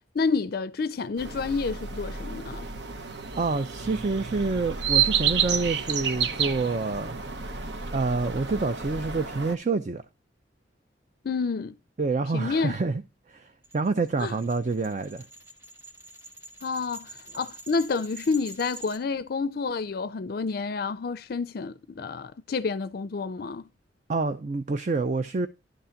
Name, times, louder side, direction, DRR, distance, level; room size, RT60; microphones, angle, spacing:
voice 1, 0.0-2.7 11.2-11.7 12.3-12.7 14.2-14.3 16.6-23.6, left 4 dB, 55° left, 0.4 m, -29 dB
sound 1, 1.2-9.6, right 7 dB, 65° right, 0.8 m, -30 dB
voice 2, 3.0-7.1 7.9-10.0 12.0-13.0 13.3-15.3 24.1-25.5, right 3 dB, 40° right, 0.5 m, -27 dB
sound 2, 13.6-19.0, right 2 dB, 15° right, 1.5 m, -46 dB
11.5 x 3.8 x 5.7 m
head